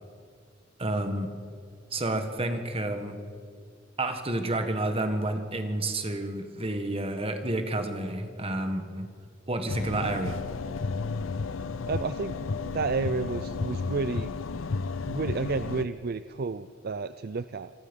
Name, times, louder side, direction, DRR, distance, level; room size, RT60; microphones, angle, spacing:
voice 1, 0.8-1.3 1.9-3.2 4.0-9.1 9.5-10.4, right 2 dB, 30° right, 6 dB, 1.6 m, -30 dB
sound 1, 9.7-15.9, left 4 dB, 80° left, 0.6 m, -33 dB
voice 2, 11.9-12.4 12.6-14.3 15.1-17.7, right 4 dB, 50° right, 13 dB, 0.5 m, -31 dB
27.5 x 20.0 x 5.4 m, 2.2 s
head